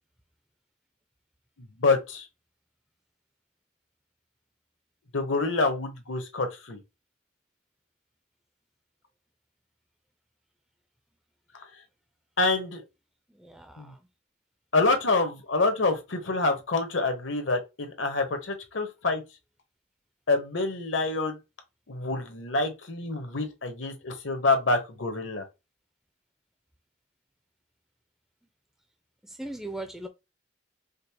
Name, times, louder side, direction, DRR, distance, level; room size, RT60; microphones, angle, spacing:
voice 1, 1.6-2.3 5.1-6.8 12.4-12.8 13.8-13.9 14.7-19.2 20.3-21.4 21.9-25.4, left 3 dB, 75° left, 1.0 m, -27 dB
voice 2, 13.3-14.0 29.2-30.1, right 1 dB, ahead, 0.4 m, -39 dB
5.1 x 2.1 x 2.9 m
head